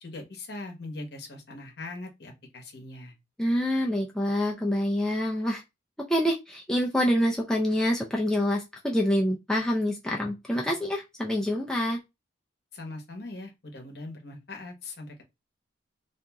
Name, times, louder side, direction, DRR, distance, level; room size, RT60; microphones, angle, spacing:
voice 1, 0.0-3.1 12.7-15.2, left 2 dB, 55° left, 0.8 m, -41 dB
voice 2, 3.4-5.6 6.1-12.0, equal, 5° left, 0.4 m, -26 dB
2.8 x 2.5 x 2.3 m
head